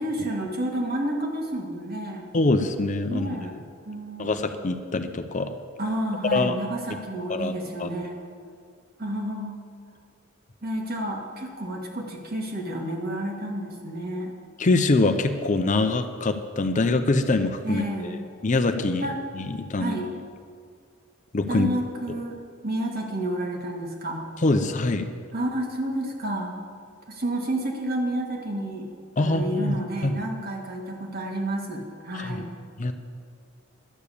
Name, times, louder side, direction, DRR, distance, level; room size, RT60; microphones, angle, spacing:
voice 1, 0.0-2.3 3.1-4.4 5.8-8.2 9.0-9.6 10.6-14.3 17.6-18.3 19.0-19.2 19.8-20.2 21.5-22.4 22.6-24.3 25.3-26.5 27.1-28.9 29.2-32.5, right 1 dB, 50° right, 1 dB, 1.8 m, -30 dB
voice 2, 2.3-3.4 4.2-5.6 6.3-6.6 7.3-7.5 7.8-7.9 14.6-18.2 18.4-19.1 19.3-20.0 21.3-21.7 24.4-25.1 29.2-30.2 32.1-32.4 32.8-32.9, left 2 dB, 40° left, 7 dB, 0.6 m, -24 dB
11.5 x 6.9 x 8.4 m, 2.2 s
head